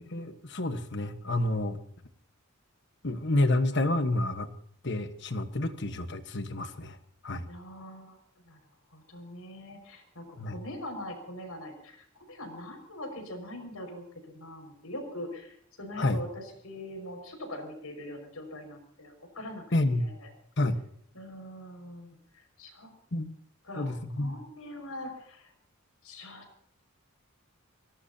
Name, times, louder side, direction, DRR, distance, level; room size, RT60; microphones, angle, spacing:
voice 1, 0.0-1.8 3.0-4.5 4.8-7.0 7.2-7.5 10.4-10.6 16.0-16.2 19.7-20.1 20.6-20.8 23.1-23.4 23.8-24.4, left 1 dB, 55° left, 9 dB, 1.4 m, -29 dB
voice 2, 7.4-8.2 8.4-8.6 8.9-14.1 14.3-19.6 20.0-20.3 21.1-22.9 23.7-25.5 26.0-26.4, left 1 dB, 85° left, 4 dB, 5.8 m, -42 dB
24.0 x 18.0 x 2.9 m, 0.67 s
head